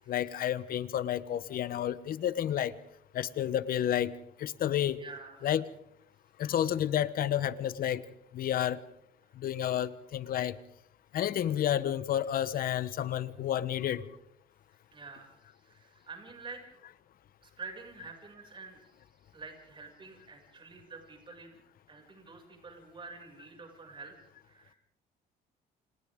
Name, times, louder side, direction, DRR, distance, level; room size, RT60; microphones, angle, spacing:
voice 1, 0.1-2.7 3.1-4.1 4.4-5.0 5.4-5.7 6.4-8.1 8.3-8.8 9.3-10.6 11.1-14.0, left 11 dB, 60° left, 16 dB, 1.1 m, -30 dB
voice 2, 5.0-5.5 14.9-16.6 17.4-19.0 19.3-21.6 21.9-24.2 24.4-24.8, right 4 dB, 30° right, 2 dB, 6.6 m, -48 dB
29.5 x 27.5 x 3.8 m, 0.72 s
cardioid pair, 110°, 17 cm